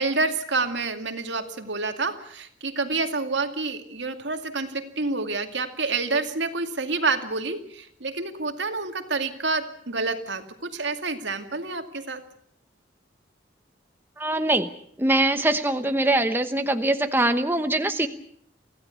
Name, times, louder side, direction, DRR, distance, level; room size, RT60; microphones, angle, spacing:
voice 1, 0.0-12.2, right 3 dB, 75° right, 6 dB, 2.3 m, -28 dB
voice 2, 14.2-14.7 15.0-18.1, right 1 dB, 10° right, 7 dB, 1.0 m, -23 dB
24.5 x 16.0 x 8.2 m, 0.65 s
head